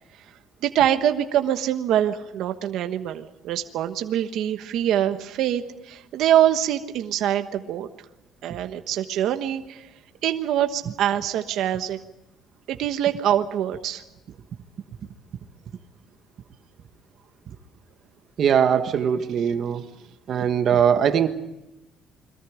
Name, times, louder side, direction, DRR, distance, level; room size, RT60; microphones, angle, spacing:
voice 1, 0.6-7.9 8.4-9.9 10.2-12.0 12.7-14.0, right 11 dB, 55° right, 7 dB, 1.2 m, -24 dB
voice 2, 18.4-19.8 20.3-21.3, right 8 dB, 40° right, 8 dB, 1.6 m, -21 dB
29.0 x 22.5 x 5.0 m, 0.92 s
cardioid pair, 180°, 0 cm